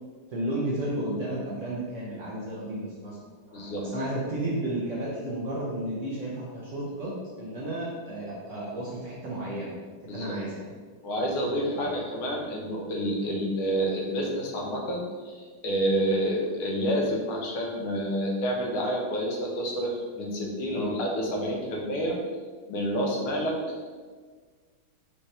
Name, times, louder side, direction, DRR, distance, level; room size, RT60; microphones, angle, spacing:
voice 1, 0.3-3.2 3.5-9.7 10.1-10.7 11.7-11.9 13.2-13.3 20.7-20.9, right 1 dB, 70° right, -6 dB, 0.7 m, -33 dB
voice 2, 3.5-3.8 10.1-10.4 11.0-22.2 22.7-23.6, equal, 80° left, -1 dB, 1.7 m, -29 dB
5.0 x 2.8 x 3.3 m, 1.5 s
omnidirectional pair, 2.3 m